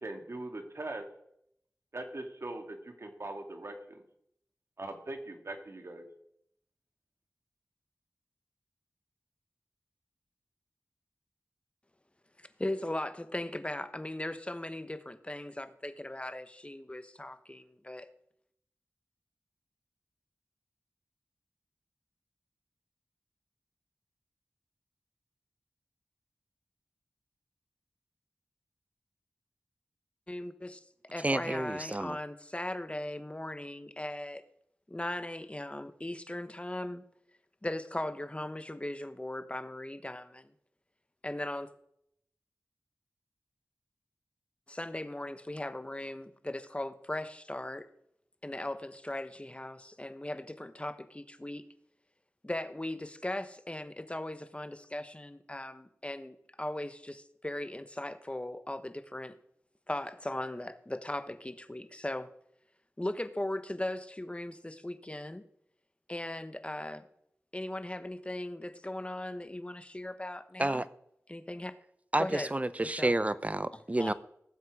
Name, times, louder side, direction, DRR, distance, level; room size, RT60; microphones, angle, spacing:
voice 1, 0.0-1.0 1.9-4.0 4.8-6.1, right 2 dB, 55° right, 5 dB, 2.2 m, -41 dB
voice 2, 12.4-18.1 30.3-30.8 31.1-34.4 34.9-37.0 37.6-40.5 41.2-41.7 44.7-47.9 48.4-51.7 52.4-59.4 59.9-62.3 63.0-65.4 66.1-67.1 67.5-70.8 71.3-71.7 72.2-72.5 72.8-73.1 73.7-74.1, left 1 dB, 20° left, 11 dB, 1.1 m, -38 dB
voice 3, 31.2-32.2 70.6-70.8 72.1-74.1, right 1 dB, 25° right, 15 dB, 0.7 m, -30 dB
18.5 x 7.5 x 4.8 m, 0.73 s
wide cardioid pair, 45°, 5 cm